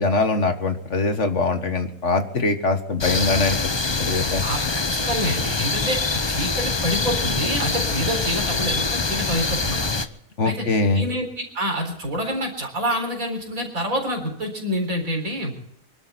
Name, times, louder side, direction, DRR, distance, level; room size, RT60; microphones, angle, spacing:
voice 1, 0.0-3.6 3.8-4.4 10.4-11.1, left 3 dB, 55° left, 7 dB, 1.9 m, -22 dB
sound 1, 3.0-10.1, left 3 dB, 25° left, 0.6 m, -24 dB
voice 2, 4.4-6.0 6.3-9.9 10.4-10.7 10.9-15.5, equal, 70° right, 3 dB, 4.5 m, -27 dB
25.0 x 12.0 x 4.3 m, 0.75 s
omnidirectional pair, 1.5 m